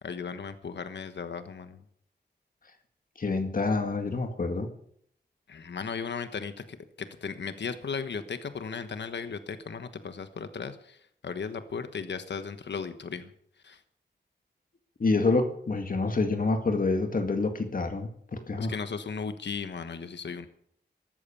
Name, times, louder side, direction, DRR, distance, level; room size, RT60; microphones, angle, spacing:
voice 1, 0.0-1.8 5.5-13.3 13.6-13.8 18.6-20.5, left 5 dB, 75° left, 10 dB, 1.2 m, -36 dB
voice 2, 3.2-4.7 15.0-18.7, left 3 dB, 50° left, 6 dB, 1.9 m, -27 dB
14.0 x 12.5 x 7.0 m, 0.67 s
wide cardioid pair, 135°, 18 cm